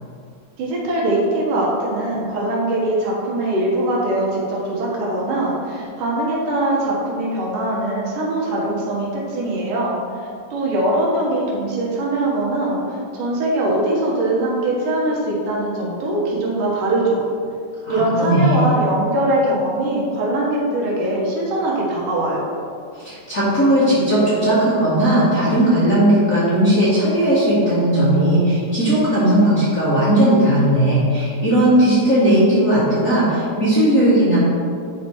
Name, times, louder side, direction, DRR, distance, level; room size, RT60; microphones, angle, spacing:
voice 1, 0.6-9.9 10.5-17.2 17.9-22.4, right 1 dB, 80° right, -4 dB, 3.1 m, -21 dB
voice 2, 17.8-18.7 22.9-34.4, right 1 dB, 30° left, -10 dB, 1.7 m, -17 dB
10.5 x 4.5 x 4.6 m, 2.4 s
omnidirectional pair, 3.7 m